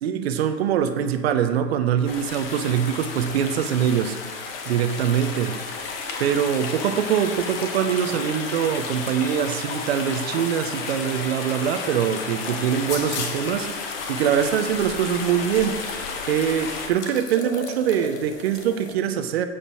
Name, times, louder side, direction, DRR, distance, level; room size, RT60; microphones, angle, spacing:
voice 1, 0.0-5.6 6.2-13.7 14.1-15.9 16.3-19.5, right 9 dB, 40° right, 9 dB, 0.9 m, -23 dB
sound 1, 2.0-16.9, left 4 dB, 35° left, 1.6 m, -32 dB
sound 2, 12.9-13.5 14.3-14.4 15.6-15.7 15.9-16.0 16.8-18.9, left 4 dB, 70° left, 1.9 m, -35 dB
15.5 x 5.3 x 4.4 m, 1.3 s
hypercardioid pair, 140°, 48 cm